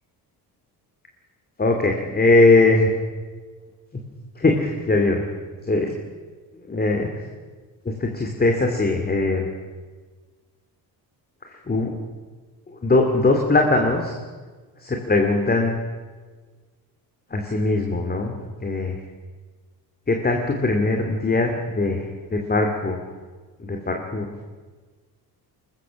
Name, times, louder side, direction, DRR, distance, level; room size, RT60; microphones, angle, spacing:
voice 1, 1.6-2.9 4.4-5.2 5.7-5.9 6.7-7.1 7.8-9.5 11.4-12.0 12.8-14.2 14.8-15.7 17.3-19.0 20.1-23.0 23.6-24.3, left 2 dB, 25° left, 3 dB, 2.6 m, -21 dB
23.0 x 21.0 x 6.4 m, 1.4 s
cardioid pair, 115°, 40 cm